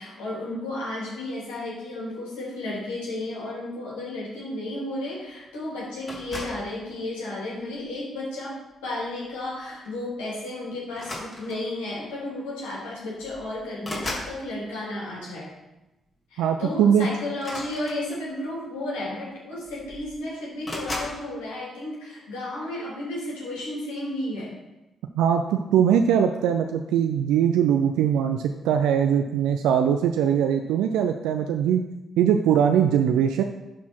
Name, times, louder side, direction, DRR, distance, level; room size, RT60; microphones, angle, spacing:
voice 1, 0.0-8.5 8.8-15.5 16.3-24.5, left 1 dB, 80° left, -5 dB, 2.8 m, -33 dB
sound 1, 6.1-6.7 7.6-7.9 9.4-9.6 9.8-10.0 10.9-11.8 12.8-12.9 13.2-14.4 17.3-18.4 19.3-19.4 19.7-20.2 20.6-21.2, left 1 dB, 35° left, 2.6 m, -36 dB
voice 2, 16.4-17.1 25.2-31.9 32.2-33.4, right 8 dB, 75° right, 5 dB, 0.4 m, -21 dB
11.5 x 4.3 x 4.5 m, 0.98 s
hypercardioid pair, 40°, 0 cm